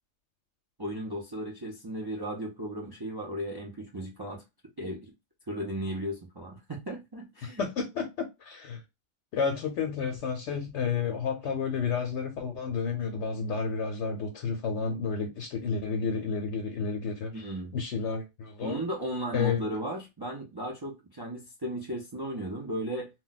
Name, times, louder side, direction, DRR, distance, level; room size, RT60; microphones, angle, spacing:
voice 1, 0.8-4.4 4.8-5.1 5.5-7.7 17.3-17.7 18.6-23.1, right 1 dB, 30° right, 0.4 m, -35 dB
voice 2, 7.4-8.8 9.3-17.3 17.7-18.8 19.3-19.6, left 5 dB, 75° left, 0.9 m, -31 dB
2.2 x 2.2 x 3.9 m
omnidirectional pair, 1.2 m